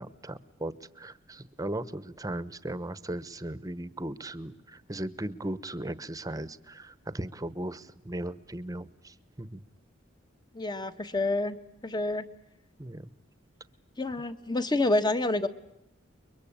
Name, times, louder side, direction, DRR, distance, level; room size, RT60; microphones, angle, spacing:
voice 1, 0.0-9.6 12.8-13.1, right 1 dB, 20° right, 15 dB, 1.0 m, -37 dB
voice 2, 10.5-11.6 11.8-12.3 14.0-15.5, left 2 dB, 25° left, 10 dB, 1.3 m, -28 dB
29.5 x 23.0 x 8.7 m, 0.79 s
head